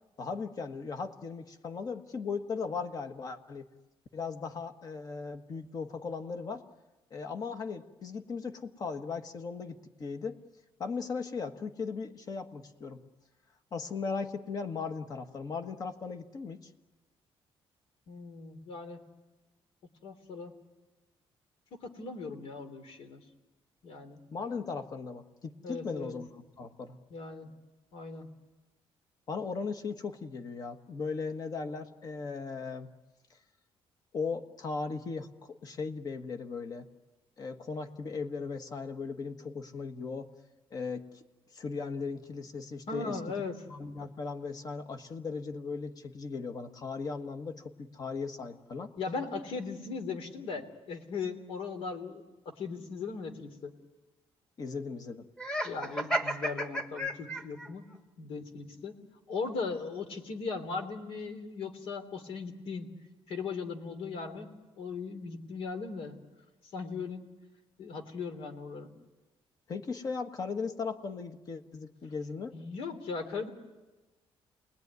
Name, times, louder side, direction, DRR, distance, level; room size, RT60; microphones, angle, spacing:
voice 1, 0.2-3.7 4.1-6.6 7.1-10.4 10.8-13.0 13.7-16.7 24.3-27.0 29.3-32.9 34.1-36.9 37.4-40.3 40.7-41.2 41.5-43.2 43.7-48.9 54.6-55.3 69.7-72.5, left 4 dB, 40° left, 7 dB, 1.5 m, -37 dB
voice 2, 18.1-19.0 20.0-20.5 21.7-23.2 23.8-24.2 25.6-26.1 27.1-27.5 27.9-28.3 42.9-43.6 49.0-52.2 52.6-53.7 55.6-57.9 58.2-58.9 59.3-62.9 63.3-64.5 64.8-66.1 66.7-67.3 67.8-68.9 72.5-73.5, left 4 dB, 70° left, 7 dB, 3.3 m, -38 dB
Laughter, 55.4-57.7, equal, 10° left, 1.4 m, -33 dB
29.0 x 20.5 x 9.6 m, 1.2 s
cardioid pair, 165°, 10 cm